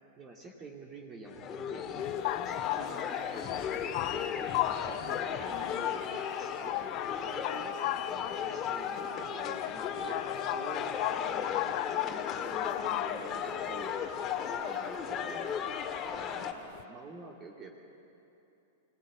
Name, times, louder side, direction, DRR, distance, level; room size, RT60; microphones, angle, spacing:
voice 1, 0.2-2.2 2.4-6.0 6.4-13.9 14.4-15.6 16.0-17.7, right 3 dB, 30° right, 0 dB, 2.8 m, -48 dB
sound 1, 1.3-16.5, left 8 dB, 30° left, 2.0 m, -35 dB
sound 2, 2.0-16.8, left 17 dB, 50° left, 0.6 m, -38 dB
23.5 x 18.0 x 9.8 m, 2.8 s
hypercardioid pair, 105°, 0 cm